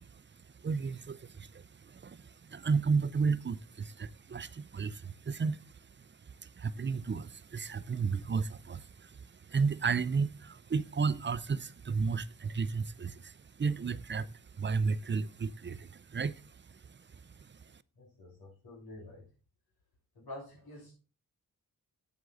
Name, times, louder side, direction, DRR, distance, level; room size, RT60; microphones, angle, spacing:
voice 1, 0.0-17.8, right 5 dB, 30° right, 0.6 m, -34 dB
voice 2, 18.0-19.3 20.1-20.9, left 1 dB, 90° left, 3.2 m, -48 dB
8.1 x 7.8 x 3.9 m
cardioid pair, 80°, 36 cm